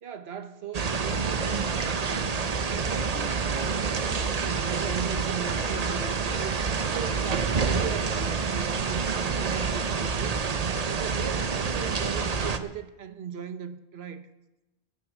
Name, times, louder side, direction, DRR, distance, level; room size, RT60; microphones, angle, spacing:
voice 1, 0.0-2.3 2.7-6.6 6.9-10.5 10.9-14.3, right 8 dB, 70° right, 1.3 m, -38 dB
sound 1, 0.7-12.6, right 5 dB, 40° right, 0.8 m, -28 dB
15.5 x 10.5 x 6.2 m
omnidirectional pair, 1.1 m